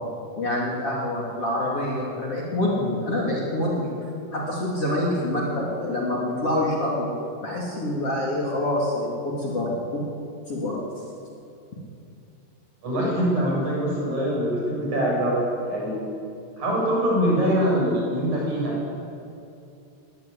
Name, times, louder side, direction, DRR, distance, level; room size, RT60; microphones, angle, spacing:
voice 1, 0.4-3.9 4.3-7.1 7.4-10.0 10.5-10.8, left 1 dB, 35° left, -4 dB, 3.8 m, -26 dB
voice 2, 12.8-16.1 16.6-19.0, equal, 45° right, -4 dB, 9.0 m, -24 dB
21.0 x 19.0 x 8.8 m, 2.6 s
omnidirectional pair, 4.7 m